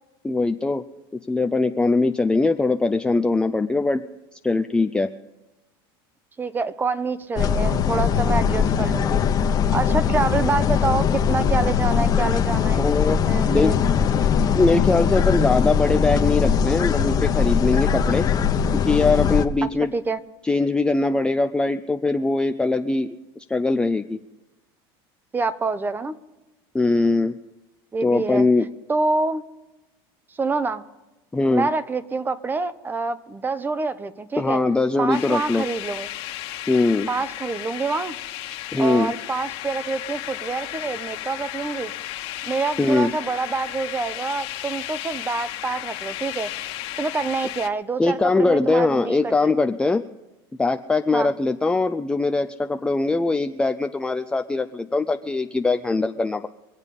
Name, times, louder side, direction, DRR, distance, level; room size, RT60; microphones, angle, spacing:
voice 1, 0.2-0.8 1.3-4.0 4.4-5.1 12.8-13.2 13.4-13.7 14.5-18.3 18.7-19.9 20.4-23.1 23.5-24.2 26.7-27.3 28.0-28.7 31.3-31.7 34.4-35.7 36.7-37.1 38.7-39.1 42.8-43.1 48.0-50.0 50.6-56.5, left 3 dB, 5° left, 7 dB, 0.4 m, -21 dB
voice 2, 6.4-13.8 19.9-20.2 25.3-26.2 27.9-28.4 28.9-29.4 30.4-30.8 31.5-34.6 35.0-36.1 37.1-38.2 38.8-41.9 42.4-46.5 47.0-49.5 51.1-51.4, right 4 dB, 15° right, 15 dB, 0.7 m, -26 dB
sound 1, 7.4-19.5, left 7 dB, 30° left, 1.0 m, -21 dB
sound 2, 35.1-47.7, left 14 dB, 55° left, 1.3 m, -34 dB
24.5 x 8.1 x 5.3 m, 1.0 s
supercardioid pair, 130°, 12 cm